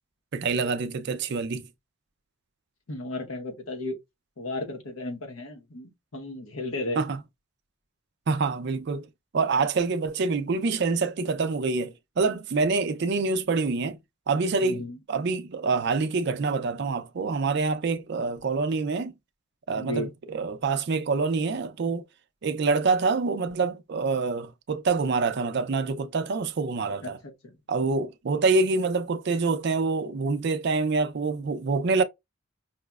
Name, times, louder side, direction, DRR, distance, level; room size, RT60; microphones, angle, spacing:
voice 1, 0.3-1.7 7.0-7.2 8.3-9.1 9.3-14.0 14.3-14.8 15.1-19.1 19.7-22.0 22.4-27.2 27.7-32.0, right 4 dB, 55° right, 0.4 m, -26 dB
voice 2, 2.9-4.0 4.4-7.0 14.6-15.0 19.7-20.1 27.0-27.1 27.4-27.5, left 2 dB, 85° left, 0.9 m, -34 dB
5.5 x 2.0 x 2.3 m
head